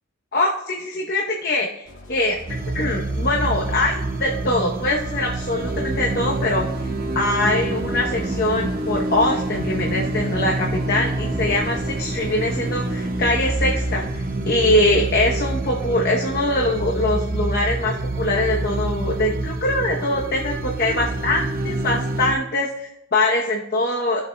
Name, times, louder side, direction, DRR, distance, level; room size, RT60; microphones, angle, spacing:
voice 1, 0.3-2.4 2.7-6.6 7.1-24.2, left 1 dB, 45° left, 0 dB, 0.8 m, -23 dB
sound 1, 1.8-7.5 8.3-14.7, equal, 60° left, 2.1 m, -43 dB
sound 2, 2.5-22.3, right 2 dB, 40° right, 0.7 m, -26 dB
16.0 x 6.8 x 2.2 m, 0.86 s
head